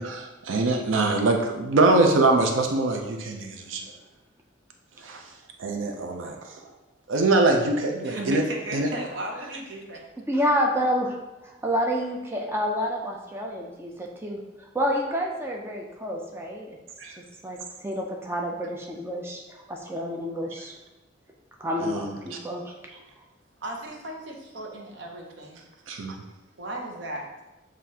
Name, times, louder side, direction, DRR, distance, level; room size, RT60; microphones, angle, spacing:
voice 1, 0.0-3.8 5.0-5.2 5.6-6.6 7.1-8.4 8.7-8.9 17.0-17.2 21.8-22.4 25.9-26.2, right 2 dB, 85° right, 3 dB, 0.5 m, -23 dB
voice 2, 8.0-10.0 23.6-25.6 26.6-27.3, right 1 dB, 65° right, 1 dB, 0.9 m, -35 dB
voice 3, 10.3-11.1 11.4-16.8 17.4-20.8 21.6-22.7, equal, 15° right, 0 dB, 0.4 m, -29 dB
7.3 x 2.5 x 2.8 m, 1.0 s
head